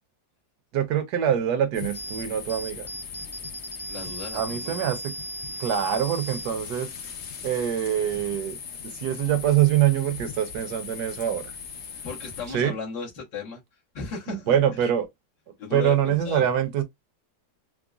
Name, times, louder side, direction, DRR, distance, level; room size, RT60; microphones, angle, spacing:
voice 1, 0.7-2.9 4.3-5.1 5.6-6.9 7.4-8.6 8.8-11.5 12.5-12.7 14.3-15.1 15.7-16.8, right 10 dB, 70° right, 1.2 m, -24 dB
sound 1, 1.7-12.6, left 6 dB, 55° left, 1.0 m, -39 dB
sound 2, 1.9-8.4, right 2 dB, ahead, 0.6 m, -40 dB
voice 2, 3.9-4.9 12.0-13.6 13.9-14.9 15.6-16.5, left 4 dB, 75° left, 1.9 m, -36 dB
4.8 x 2.1 x 2.4 m
omnidirectional pair, 2.0 m